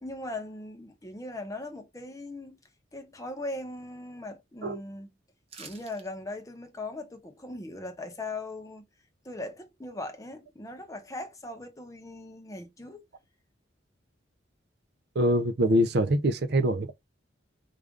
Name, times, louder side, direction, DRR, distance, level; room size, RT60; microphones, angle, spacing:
voice 1, 0.0-2.6 2.9-5.1 5.6-8.9 9.2-13.0, left 2 dB, 15° left, 0.7 m, -39 dB
sound 1, 5.5-6.1 6.4-6.5, right 5 dB, 35° right, 0.8 m, -47 dB
voice 2, 15.1-16.9, equal, 60° right, 0.6 m, -24 dB
5.0 x 2.4 x 3.5 m
head